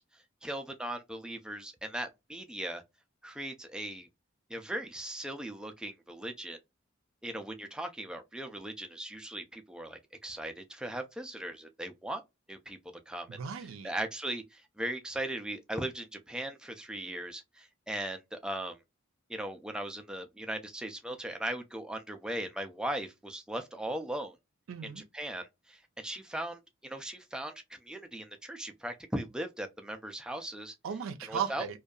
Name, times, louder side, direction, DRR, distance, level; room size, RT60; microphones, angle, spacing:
voice 1, 0.0-2.8 3.2-4.1 4.5-6.6 7.2-12.2 12.5-12.8 13.1-13.4 13.8-18.8 19.3-24.4 25.1-30.7 31.3-31.8, right 1 dB, 5° right, 0.3 m, -38 dB
voice 2, 13.3-13.9 24.7-25.0 30.8-31.8, right 7 dB, 85° right, 0.4 m, -36 dB
2.6 x 2.3 x 2.2 m
head